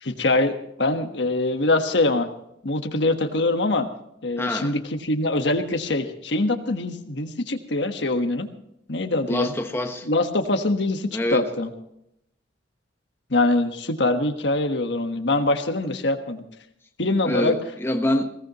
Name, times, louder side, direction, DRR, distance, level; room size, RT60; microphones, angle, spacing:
voice 1, 0.0-2.3 2.6-3.9 4.2-8.5 8.9-9.5 10.0-11.7 13.3-16.4 17.0-17.5, left 2 dB, 70° left, 1.4 m, -23 dB
voice 2, 4.4-4.7 9.3-10.1 11.1-11.4 17.2-18.3, left 1 dB, 15° left, 1.1 m, -25 dB
20.5 x 17.5 x 3.0 m
head